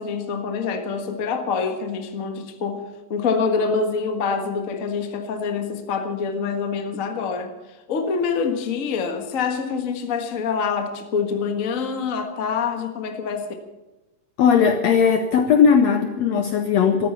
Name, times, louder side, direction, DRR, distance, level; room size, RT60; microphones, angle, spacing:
voice 1, 0.0-2.8 3.1-7.5 7.9-13.5, left 5 dB, 45° left, 1.1 m, -25 dB
voice 2, 14.4-17.1, left 6 dB, 75° left, 1.6 m, -18 dB
14.0 x 13.5 x 7.0 m
omnidirectional pair, 3.9 m